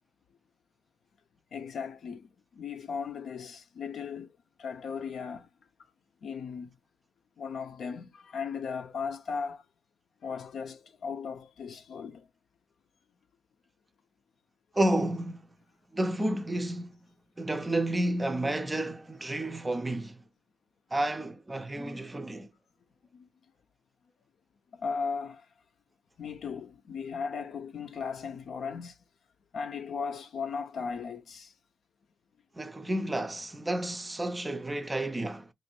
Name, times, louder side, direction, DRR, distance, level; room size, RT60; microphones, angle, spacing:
voice 1, 1.5-5.5 6.2-6.8 7.4-9.7 10.2-12.3 23.1-23.3 24.7-25.5 26.2-29.0 29.5-31.5, left 5 dB, 60° left, 0.6 m, -37 dB
voice 2, 14.7-15.5 15.9-17.0 17.4-20.2 20.9-22.5 32.6-35.5, right 1 dB, 15° right, 0.5 m, -31 dB
3.1 x 2.5 x 4.1 m
cardioid pair, 90°, 0 cm